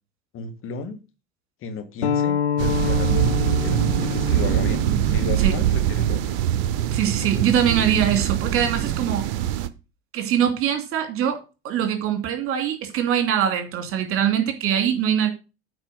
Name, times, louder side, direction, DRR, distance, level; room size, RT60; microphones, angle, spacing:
voice 1, 0.3-1.0 1.6-6.2 7.2-7.5, left 5 dB, 40° left, 1.7 m, -34 dB
sound 1, 2.0-7.2, left 9 dB, 80° left, 0.7 m, -28 dB
sound 2, 2.6-9.7, right 12 dB, 60° right, 0.9 m, -23 dB
voice 2, 6.9-9.3 10.1-11.4 11.6-15.3, right 9 dB, 45° right, 2.6 m, -22 dB
8.8 x 4.6 x 6.4 m
figure-of-eight pair, 75°, 32 cm